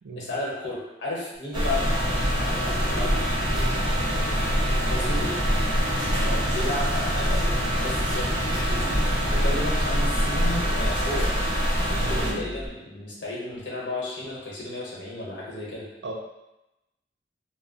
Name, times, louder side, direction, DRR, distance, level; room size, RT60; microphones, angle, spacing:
voice 1, 0.2-3.2 4.8-5.3 6.0-11.3 11.8-15.9, left 2 dB, 75° left, -5 dB, 0.9 m, -34 dB
sound 1, 1.3-12.7, equal, ahead, 0.9 m, -42 dB
sound 2, 1.5-12.3, equal, 25° right, 0.7 m, -24 dB
sound 3, 1.8-11.6, left 2 dB, 40° left, 0.3 m, -36 dB
voice 2, 3.5-3.8 11.9-12.5 16.0-16.1, right 3 dB, 65° right, 0 dB, 0.5 m, -36 dB
2.2 x 2.1 x 3.7 m, 0.95 s
head